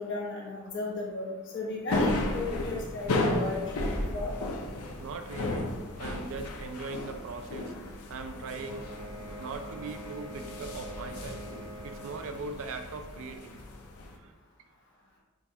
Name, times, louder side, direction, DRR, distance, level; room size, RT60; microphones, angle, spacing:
voice 1, 0.0-4.3, left 3 dB, 60° left, -4 dB, 1.1 m, -35 dB
sound 1, 1.9-14.1, left 1 dB, 80° left, 0.6 m, -34 dB
voice 2, 5.0-7.7 8.1-8.9 9.4-11.5 11.8-13.6 14.1-14.3, right 4 dB, 65° right, 7 dB, 0.4 m, -40 dB
sound 2, 8.5-12.4, right 1 dB, 20° left, 0.8 m, -45 dB
6.0 x 2.3 x 2.7 m, 1.1 s
head